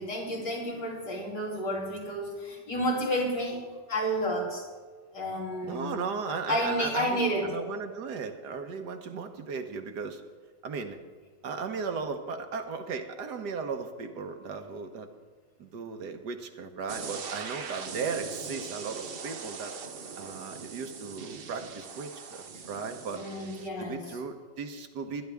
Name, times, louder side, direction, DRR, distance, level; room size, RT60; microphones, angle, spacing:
voice 1, 0.0-4.7 5.1-5.9 6.5-7.5 23.2-24.1, equal, 85° left, -2 dB, 3.6 m, -31 dB
voice 2, 5.7-10.2 10.6-11.0 11.4-15.1 15.6-19.8 20.2-23.2 23.8-25.2, right 5 dB, 75° right, 6 dB, 1.6 m, -36 dB
sound 1, 16.9-23.7, right 5 dB, 45° right, 0.7 m, -41 dB
22.0 x 10.5 x 3.5 m, 1.5 s
omnidirectional pair, 1.8 m